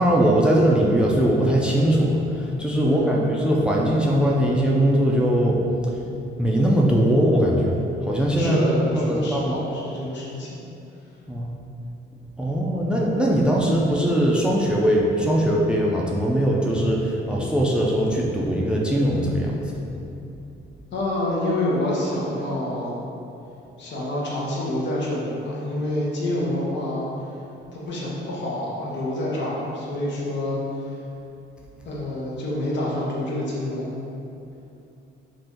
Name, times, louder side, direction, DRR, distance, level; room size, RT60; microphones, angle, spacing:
voice 1, 0.0-5.6 6.4-7.7 8.0-8.6 8.9-9.6 11.3-11.5 12.4-19.6, right 1 dB, 5° right, -2 dB, 0.3 m, -20 dB
voice 2, 2.7-3.2 8.3-10.6 20.9-23.0 23.8-27.0 27.7-30.6 31.8-33.9, left 1 dB, 65° left, -5 dB, 0.8 m, -27 dB
2.7 x 2.5 x 3.5 m, 2.8 s
cardioid pair, 90°, 20 cm